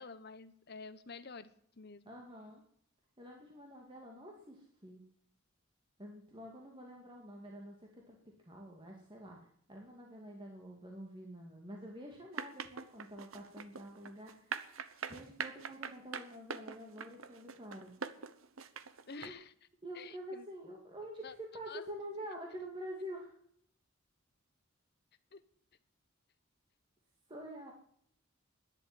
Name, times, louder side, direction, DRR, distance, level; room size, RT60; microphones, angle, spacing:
voice 1, 0.0-1.5 1.8-2.1 19.1-19.5 19.9-20.4 21.2-21.3 21.7-21.8 25.3-25.4, left 4 dB, 50° left, 12 dB, 1.1 m, -49 dB
voice 2, 2.1-2.6 3.2-5.0 6.0-9.4 9.7-14.8 15.1-17.9 19.2-19.3 19.8-23.3 27.3-27.7, equal, 25° right, 0 dB, 2.3 m, -47 dB
sound 1, 12.3-19.3, right 6 dB, 85° right, 1.0 m, -42 dB
12.0 x 10.5 x 9.7 m, 0.67 s
head